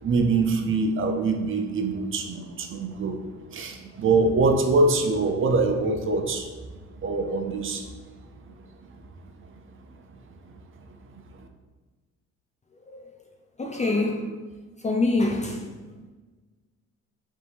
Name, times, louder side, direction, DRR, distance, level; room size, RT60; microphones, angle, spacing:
voice 1, 0.0-3.2 3.5-6.5 7.0-7.8, right 3 dB, 45° right, 5 dB, 0.5 m, -24 dB
voice 2, 13.6-14.4 14.8-15.7, left 2 dB, 25° left, 2 dB, 0.4 m, -25 dB
4.2 x 2.7 x 3.4 m, 1.3 s
cardioid pair, 90°, 30 cm